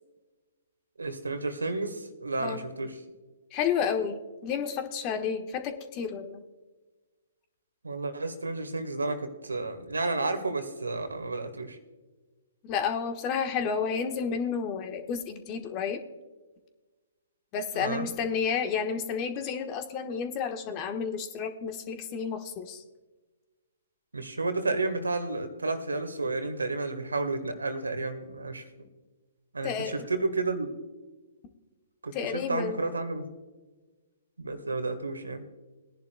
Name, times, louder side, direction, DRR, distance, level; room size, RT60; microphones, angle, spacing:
voice 1, 1.0-3.0 7.8-11.8 17.7-18.1 24.1-28.6 29.5-30.7 32.0-33.2 34.4-35.4, right 3 dB, 85° right, 8 dB, 1.5 m, -31 dB
voice 2, 3.5-6.4 12.6-16.0 17.5-22.8 29.6-30.1 32.1-32.8, left 6 dB, 30° left, 7 dB, 1.2 m, -31 dB
21.5 x 10.5 x 2.2 m, 1.3 s
figure-of-eight pair, 125°, 0 cm